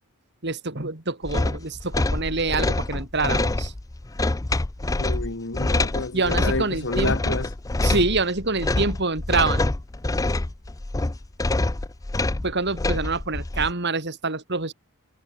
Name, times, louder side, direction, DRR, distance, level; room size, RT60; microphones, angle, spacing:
voice 1, 0.4-3.7 6.1-7.4 7.8-9.7 12.4-14.7, right 3 dB, 50° right, 2.9 m, -26 dB
sound 1, 1.3-13.7, left 2 dB, 15° left, 0.5 m, -25 dB
voice 2, 5.0-7.5, left 3 dB, 55° left, 1.5 m, -29 dB
head